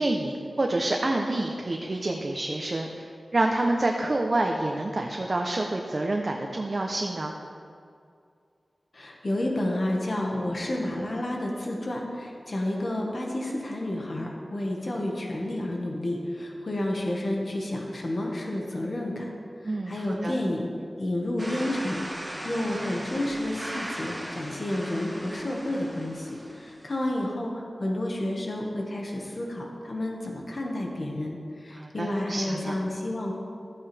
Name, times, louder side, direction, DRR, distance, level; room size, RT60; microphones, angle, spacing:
voice 1, 0.0-7.3 19.6-20.0 20.2-20.3 31.8-32.7, right 2 dB, 45° right, 1 dB, 0.8 m, -28 dB
voice 2, 8.9-19.3 19.6-20.7 21.0-33.3, left 1 dB, 55° left, -1 dB, 1.6 m, -30 dB
sound 1, 21.4-27.2, right 1 dB, 25° right, 2.4 m, -38 dB
13.0 x 8.7 x 3.5 m, 2.4 s
wide cardioid pair, 60°, 0 cm